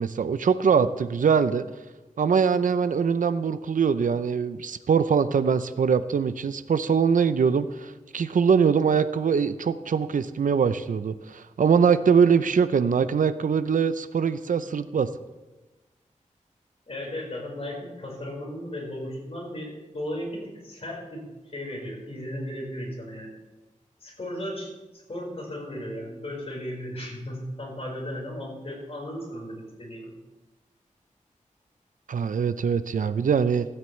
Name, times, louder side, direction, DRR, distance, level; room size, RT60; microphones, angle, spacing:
voice 1, 0.0-1.7 2.2-15.1 32.1-33.7, right 6 dB, 80° right, 12 dB, 0.5 m, -23 dB
voice 2, 16.9-23.3 24.0-30.1, equal, 50° left, -1 dB, 4.7 m, -36 dB
16.5 x 12.5 x 3.2 m, 1.1 s
wide cardioid pair, 75°, 13 cm